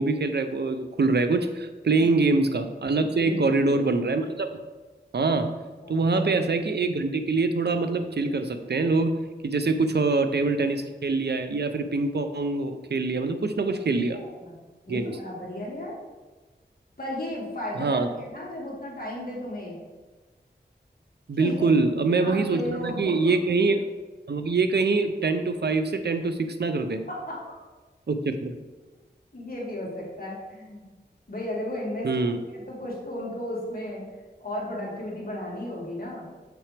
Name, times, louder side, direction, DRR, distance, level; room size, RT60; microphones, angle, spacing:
voice 1, 0.0-4.5 5.1-5.5 5.9-14.2 14.9-15.1 17.8-18.1 21.3-23.8 24.3-27.0 28.1-28.6 32.0-32.4, right 3 dB, 65° right, 8 dB, 0.6 m, -24 dB
voice 2, 3.1-3.8 5.8-6.3 13.7-13.8 14.1-14.6 14.9-16.0 17.0-19.8 21.3-21.7 22.1-23.3 27.1-27.4 29.3-30.9 31.3-34.0 34.4-36.3, left 1 dB, 55° left, -5 dB, 2.3 m, -34 dB
7.0 x 6.0 x 3.4 m, 1.3 s
wide cardioid pair, 60°, 18 cm